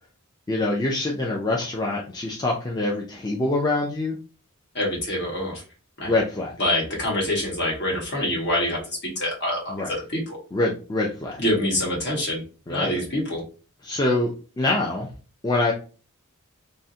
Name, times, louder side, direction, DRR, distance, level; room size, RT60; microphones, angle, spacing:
voice 1, 0.5-4.2 6.1-6.5 9.7-10.0 10.5-11.4 12.7-13.0 13.8-15.1 15.4-15.7, left 2 dB, 20° left, -2 dB, 0.4 m, -25 dB
voice 2, 4.7-5.6 6.0-6.1 6.6-10.4 11.4-12.4 12.7-13.4, left 1 dB, 50° left, -3 dB, 1.4 m, -26 dB
3.5 x 2.1 x 2.7 m, 0.36 s
head